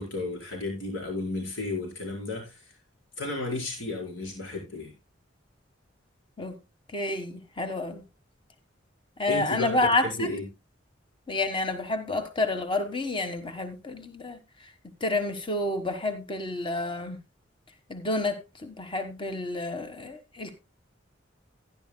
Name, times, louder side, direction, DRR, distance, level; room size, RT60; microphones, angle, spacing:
voice 1, 0.0-2.7 3.2-4.9 9.3-10.5, left 2 dB, 80° left, 4.7 m, -33 dB
voice 2, 6.9-8.0 9.2-10.3 11.3-14.4 15.0-17.2 17.9-20.6, left 2 dB, 25° left, 1.4 m, -29 dB
16.5 x 10.5 x 2.2 m
head